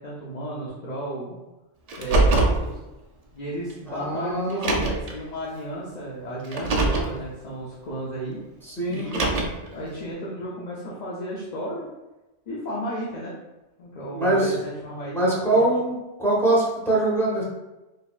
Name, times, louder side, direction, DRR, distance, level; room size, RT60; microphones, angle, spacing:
voice 1, 0.0-1.4 2.0-2.8 3.3-8.4 8.9-11.9 12.5-13.3 13.8-15.7, right 1 dB, 45° left, -6 dB, 0.6 m, -33 dB
Car, 1.9-2.6 3.7-3.8 4.5-5.1 6.4-7.1 8.9-9.7, right 2 dB, 65° right, 0.3 m, -22 dB
voice 2, 3.9-4.8 8.7-9.1 14.1-14.5 15.1-15.9 16.2-17.4, right 2 dB, ahead, -7 dB, 0.9 m, -23 dB
4.0 x 2.7 x 2.4 m, 1.0 s
omnidirectional pair, 1.2 m